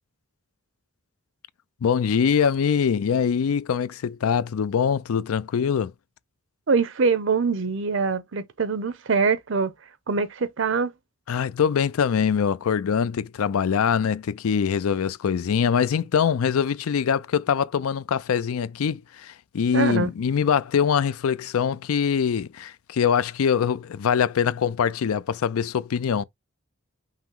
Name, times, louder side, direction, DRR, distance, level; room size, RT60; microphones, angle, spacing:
voice 1, 1.8-5.9 11.3-26.2, left 7 dB, 85° left, 0.4 m, -23 dB
voice 2, 6.7-9.7 10.1-10.9 19.7-20.1, right 4 dB, 60° right, 0.6 m, -23 dB
5.7 x 2.0 x 4.5 m
head